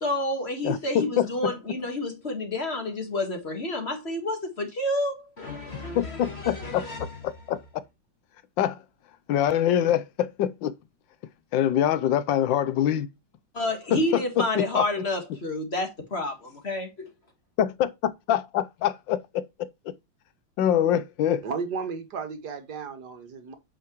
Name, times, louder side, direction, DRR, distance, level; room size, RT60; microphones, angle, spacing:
voice 1, 0.0-7.1 13.5-17.1, left 1 dB, 30° left, 1.7 m, -29 dB
voice 2, 0.6-1.5 5.9-6.9 7.2-7.6 8.6-8.8 9.3-10.7 11.5-13.1 13.9-14.8 17.6-19.7 20.6-21.4, left 10 dB, 70° left, 1.3 m, -25 dB
voice 3, 21.4-23.6, right 5 dB, 55° right, 1.9 m, -34 dB
8.7 x 5.8 x 3.0 m
omnidirectional pair, 2.3 m